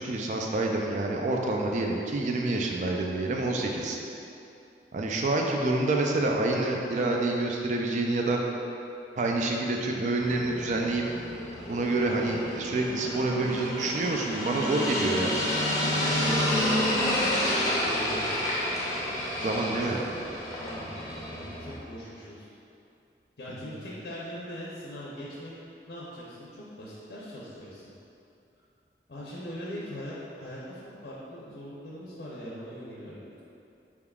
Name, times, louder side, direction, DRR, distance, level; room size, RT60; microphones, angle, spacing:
voice 1, 0.0-4.0 4.9-8.4 9.2-11.0 11.7-15.3 19.4-20.0, right 2 dB, 45° right, 0 dB, 0.3 m, -27 dB
sound 1, 10.2-21.8, left 1 dB, 20° left, 0.5 m, -30 dB
voice 2, 15.9-17.2 17.8-18.2 19.4-20.1 20.6-22.5 23.4-25.5 25.9-27.9 29.1-33.4, equal, 80° left, -7 dB, 0.6 m, -41 dB
4.6 x 3.5 x 2.3 m, 2.7 s
head